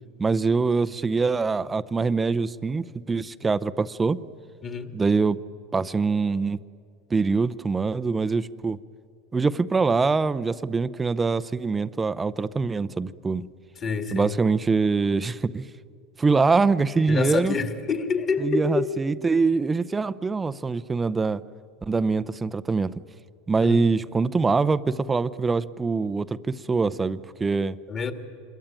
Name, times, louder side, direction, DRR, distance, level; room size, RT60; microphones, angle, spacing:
voice 1, 0.2-4.2 4.9-5.4 5.7-6.6 7.1-8.8 9.3-13.5 14.1-15.7 16.2-17.5 18.4-21.4 21.8-22.9 23.5-27.8, right 4 dB, 15° right, 16 dB, 0.7 m, -24 dB
voice 2, 4.6-4.9 13.8-14.4 17.1-18.9 23.6-23.8 27.9-28.1, left 5 dB, 35° left, 7 dB, 2.3 m, -27 dB
26.5 x 22.5 x 9.0 m, 2.2 s
supercardioid pair, 120°, 0 cm